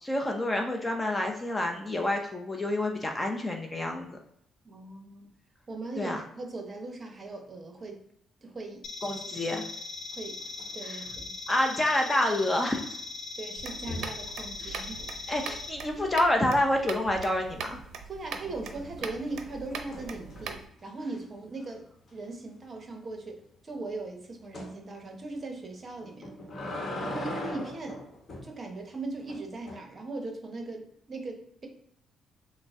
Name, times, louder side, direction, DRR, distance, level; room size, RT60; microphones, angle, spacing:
voice 1, 0.0-4.2 6.0-6.2 9.0-9.6 10.8-11.0 11.5-12.8 14.6-14.8 15.3-17.8, left 1 dB, 20° left, 2 dB, 0.6 m, -28 dB
voice 2, 4.6-5.3 5.7-8.0 8.4-9.4 10.2-10.4 10.7-11.3 13.4-15.2 18.0-21.8 22.1-26.3 27.0-28.1 28.4-31.7, right 2 dB, 40° right, 3 dB, 0.8 m, -39 dB
sound 1, 8.8-15.7, left 3 dB, 70° left, 0.5 m, -40 dB
sound 2, 10.1-10.7 11.0-11.4 13.7-14.3 17.4-17.9 18.3-20.7 21.1-21.2 21.6-21.7 22.1-22.2 24.5-24.7 26.0-28.5 29.3-29.8, left 1 dB, 45° left, 1.0 m, -40 dB
sound 3, 13.6-20.7, right 6 dB, 75° right, 0.5 m, -41 dB
3.9 x 2.0 x 3.5 m, 0.73 s
cardioid pair, 90°, 0 cm